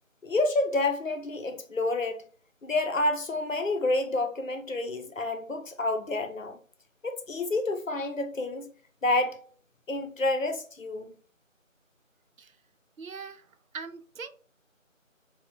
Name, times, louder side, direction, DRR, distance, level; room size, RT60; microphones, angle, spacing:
voice 1, 0.2-2.2 2.6-6.6 7.0-8.7 9.0-9.4 9.9-11.1, left 2 dB, 75° left, 0.7 m, -29 dB
voice 2, 13.0-14.3, right 5 dB, 85° right, 0.5 m, -42 dB
3.4 x 2.3 x 2.6 m
figure-of-eight pair, 180°, 40 cm